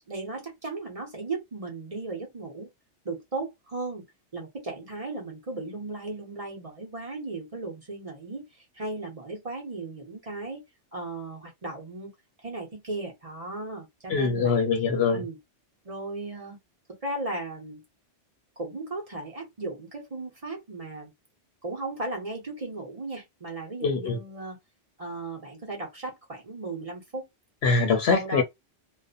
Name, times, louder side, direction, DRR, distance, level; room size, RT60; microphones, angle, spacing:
voice 1, 0.1-2.7 3.0-4.0 4.3-10.6 10.9-12.1 12.4-14.6 15.1-15.4 15.8-16.6 17.0-17.8 18.6-21.1 21.6-24.6 25.0-27.3 28.1-28.4, right 2 dB, 35° right, 0.8 m, -36 dB
voice 2, 14.1-15.2 23.8-24.2 27.6-28.4, left 5 dB, 65° left, 0.8 m, -23 dB
2.4 x 2.1 x 2.4 m
omnidirectional pair, 1.2 m